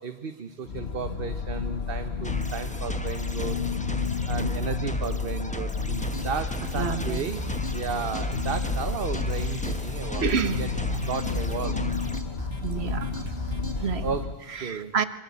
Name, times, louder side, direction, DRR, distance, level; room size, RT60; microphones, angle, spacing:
voice 1, 0.0-3.6 4.3-7.4 7.7-10.3 10.6-10.7 11.1-11.8 14.0-14.9, right 6 dB, 60° right, 9 dB, 1.2 m, -34 dB
sound 1, 0.7-14.3, left 4 dB, 80° left, 1.3 m, -31 dB
sound 2, 2.2-12.2, left 1 dB, 5° left, 1.2 m, -37 dB
sound 3, 5.7-13.9, right 1 dB, 25° right, 1.8 m, -37 dB
voice 2, 6.7-7.2 10.2-10.7 12.6-13.2 13.8-14.0 14.5-15.0, right 6 dB, 80° right, 12 dB, 1.5 m, -28 dB
26.0 x 24.0 x 8.4 m, 1.3 s
omnidirectional pair, 1.1 m